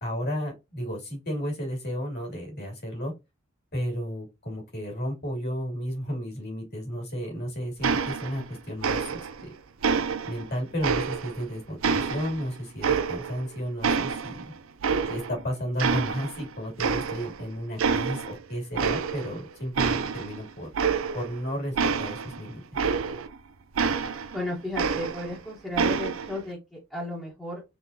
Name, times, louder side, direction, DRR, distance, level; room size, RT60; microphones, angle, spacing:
voice 1, 0.0-3.1 3.7-9.5 10.3-14.5 15.1-20.7 21.1-22.6, equal, 55° left, 1 dB, 2.5 m, -33 dB
sound 1, 7.8-8.5 8.8-9.4 9.8-11.4 11.8-13.5 13.8-15.4 15.8-16.5 16.8-17.4 17.8-18.4 18.7-19.4 19.7-23.4 23.8-25.4 25.7-26.4, right 5 dB, 90° right, 0.5 m, -28 dB
voice 2, 24.3-27.6, left 1 dB, ahead, -4 dB, 1.2 m, -34 dB
4.2 x 3.7 x 2.6 m, 0.23 s
head